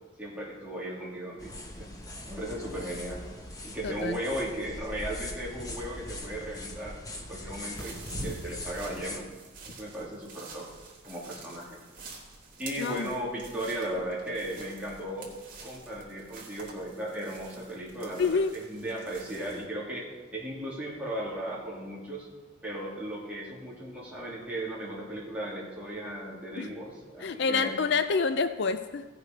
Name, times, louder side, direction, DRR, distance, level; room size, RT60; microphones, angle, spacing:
voice 1, 0.2-1.9 2.2-3.2 3.6-9.3 9.7-10.7 11.0-11.8 12.6-15.3 15.6-22.3 22.6-27.8, right 1 dB, 5° right, -6 dB, 2.8 m, -36 dB
sound 1, 1.4-9.2, left 1 dB, 15° left, 1.1 m, -41 dB
voice 2, 3.8-4.2 12.8-13.1 18.2-18.6 26.6-26.7 27.2-29.1, left 4 dB, 55° left, 10 dB, 0.4 m, -27 dB
sound 2, 7.7-19.6, right 2 dB, 40° right, 2.3 m, -46 dB
16.0 x 6.8 x 5.3 m, 1.2 s
head